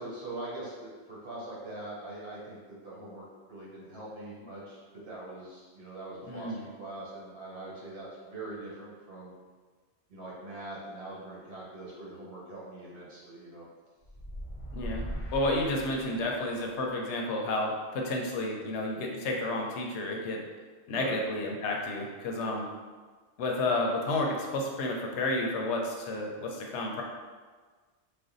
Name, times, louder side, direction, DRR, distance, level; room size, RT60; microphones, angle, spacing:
voice 1, 0.0-2.6 2.8-9.3 10.1-13.7 20.9-21.2, right 2 dB, 65° right, -7 dB, 1.2 m, -42 dB
voice 2, 6.3-6.7 14.7-15.1 15.3-20.4 20.9-22.7 23.4-27.0, left 2 dB, 85° left, 0 dB, 0.9 m, -31 dB
sound 1, 14.0-16.7, equal, 55° left, 0.3 m, -39 dB
2.5 x 2.2 x 3.8 m, 1.4 s
omnidirectional pair, 1.1 m